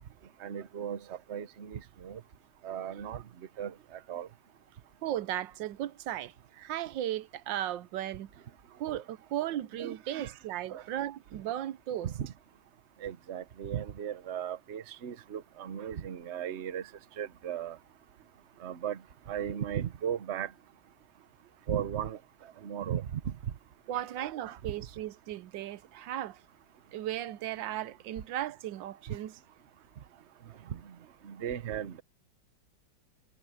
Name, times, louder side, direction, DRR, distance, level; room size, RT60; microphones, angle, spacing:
voice 1, 0.4-2.2 2.6-3.2 3.6-3.7 4.1-4.3 9.8-10.3 10.7-10.8 12.0-12.3 13.0-16.8 17.2-17.8 18.6-19.0 19.3-20.5 21.7-22.2 22.6-23.1 24.2-24.6 29.1-29.2 30.7-30.8 31.2-32.0, right 9 dB, 45° right, 1.0 m, -36 dB
voice 2, 5.0-8.3 8.8-12.1 23.9-26.4 26.9-29.4, right 12 dB, 90° right, 1.4 m, -36 dB
omnidirectional pair, 2.0 m